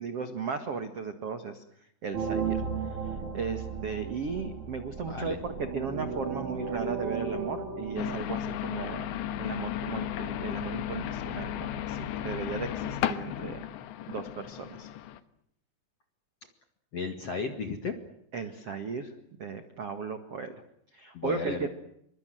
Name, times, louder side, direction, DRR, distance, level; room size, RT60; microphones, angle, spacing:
voice 1, 0.0-1.6 2.0-2.6 2.9-13.6 14.1-14.9 18.3-19.1 19.4-20.5 20.9-21.7, right 5 dB, 60° right, 8 dB, 1.5 m, -36 dB
sound 1, 2.1-8.2, right 5 dB, 40° right, 4.9 m, -35 dB
voice 2, 5.1-5.4 16.9-17.9 21.1-21.7, left 4 dB, 50° left, 6 dB, 2.0 m, -34 dB
sound 2, 8.0-15.2, left 10 dB, 75° left, 3.3 m, -34 dB
28.0 x 24.5 x 7.8 m, 0.73 s
omnidirectional pair, 5.5 m